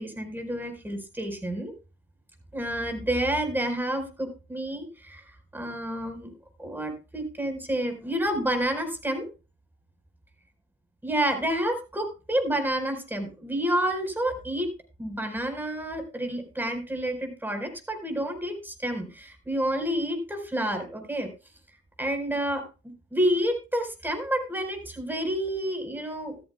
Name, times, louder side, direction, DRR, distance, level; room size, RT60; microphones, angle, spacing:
voice 1, 0.0-1.7 2.5-6.3 6.6-9.3 11.0-14.7 15.0-21.3 22.0-22.6 23.1-26.4, right 1 dB, 10° right, 5 dB, 4.6 m, -29 dB
14.0 x 14.0 x 2.3 m, 0.31 s
cardioid pair, 90°, 20 cm